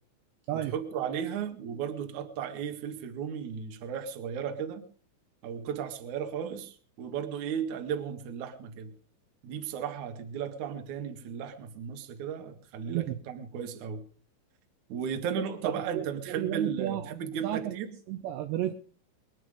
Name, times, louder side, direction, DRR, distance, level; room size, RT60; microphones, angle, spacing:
voice 1, 0.5-4.8 5.4-8.9 9.4-14.0 14.9-17.9, right 7 dB, 55° right, 6 dB, 2.3 m, -35 dB
voice 2, 12.9-13.2 15.6-17.1 17.4-17.8 18.1-18.7, right 13 dB, 75° right, 8 dB, 2.7 m, -32 dB
22.0 x 11.0 x 5.0 m, 0.41 s
omnidirectional pair, 5.7 m